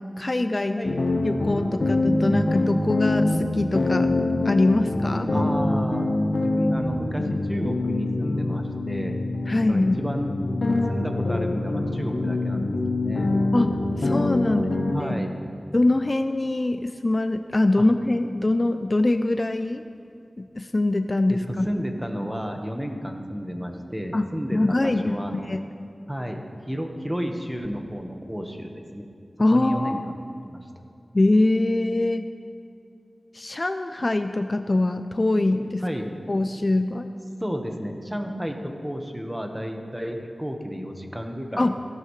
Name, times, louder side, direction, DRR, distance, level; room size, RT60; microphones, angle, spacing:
voice 1, 0.2-0.9 1.2-4.1 4.4-5.3 9.5-10.0 13.5-14.6 15.0-15.2 15.7-19.8 20.4-21.7 24.1-25.7 29.4-30.1 31.1-32.3 33.3-35.8 36.3-37.1 41.6-41.8, left 2 dB, 45° left, 9 dB, 0.5 m, -23 dB
sound 1, 0.8-15.1, left 2 dB, 75° left, 1.1 m, -25 dB
voice 2, 5.3-6.1 6.4-9.2 9.7-10.3 10.9-13.3 14.4-14.6 14.9-15.3 17.8-17.9 21.3-25.5 26.1-29.0 29.5-30.0 30.4-30.7 35.8-36.1 37.4-41.7, equal, 10° right, 3 dB, 1.4 m, -32 dB
15.5 x 12.5 x 3.3 m, 2.5 s
cardioid pair, 45°, 0 cm